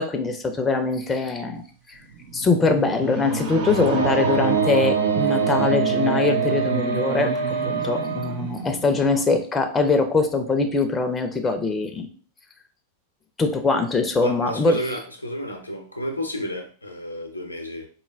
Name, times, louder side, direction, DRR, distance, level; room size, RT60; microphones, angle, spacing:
voice 1, 0.0-1.6 2.3-7.3 7.6-12.1 13.4-14.8, left 3 dB, 15° left, 5 dB, 0.5 m, -22 dB
sound 1, 2.0-9.4, right 4 dB, 55° right, 0.8 m, -28 dB
Wind instrument woodwind instrument, 4.0-8.4, right 7 dB, 85° right, 0.3 m, -26 dB
voice 2, 14.2-17.9, equal, 85° left, 3 dB, 0.6 m, -31 dB
4.2 x 2.2 x 3.3 m, 0.41 s
figure-of-eight pair, 90°, 0 cm